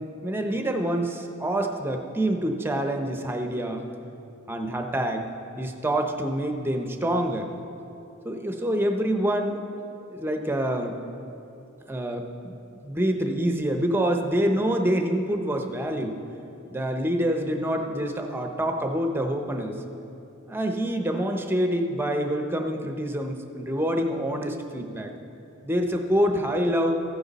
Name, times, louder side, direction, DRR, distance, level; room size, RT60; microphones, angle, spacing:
voice 1, 0.0-3.9 4.5-5.3 5.6-7.5 8.2-11.0 11.9-16.1 16.7-19.7 20.5-25.1 25.6-26.9, right 1 dB, 10° right, 4 dB, 0.7 m, -26 dB
14.5 x 9.4 x 4.1 m, 2.9 s
head